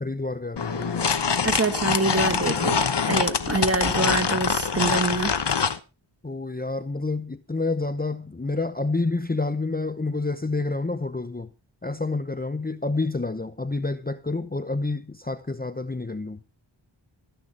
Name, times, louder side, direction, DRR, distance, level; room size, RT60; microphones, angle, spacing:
voice 1, 0.0-1.1 6.2-11.5 11.8-16.4, left 3 dB, 20° left, 0.8 m, -28 dB
sound 1, 0.6-5.8, left 6 dB, 55° left, 1.0 m, -24 dB
voice 2, 1.4-5.3, right 3 dB, 30° right, 1.5 m, -25 dB
14.5 x 10.0 x 4.3 m
wide cardioid pair, 55°, 48 cm